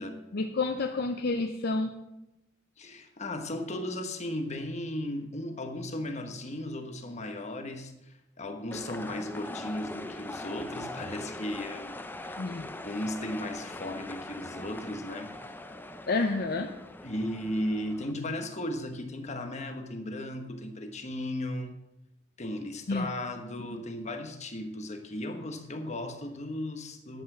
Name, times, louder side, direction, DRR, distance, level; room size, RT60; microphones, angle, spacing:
voice 1, 0.3-1.9 12.4-12.7 16.1-16.7 22.9-23.1, left 3 dB, 55° left, 0.6 m, -29 dB
voice 2, 2.8-12.0 12.2-12.4 12.8-15.4 17.0-21.8 22.4-27.2, left 1 dB, 35° left, 1.2 m, -36 dB
sound 1, 8.7-18.1, left 1 dB, 10° left, 0.6 m, -42 dB
10.5 x 8.3 x 6.1 m
head